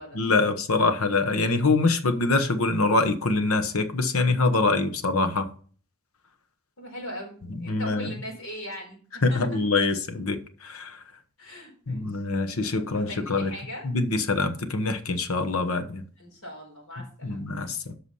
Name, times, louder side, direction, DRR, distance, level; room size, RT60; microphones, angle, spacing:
voice 1, 0.1-5.5 7.6-8.1 9.2-11.0 11.9-13.5 13.8-16.0 17.2-18.0, left 3 dB, 85° left, 1.1 m, -24 dB
voice 2, 6.8-9.6 11.4-13.9 16.2-17.5, equal, 70° left, 4.7 m, -40 dB
8.4 x 6.1 x 5.5 m
head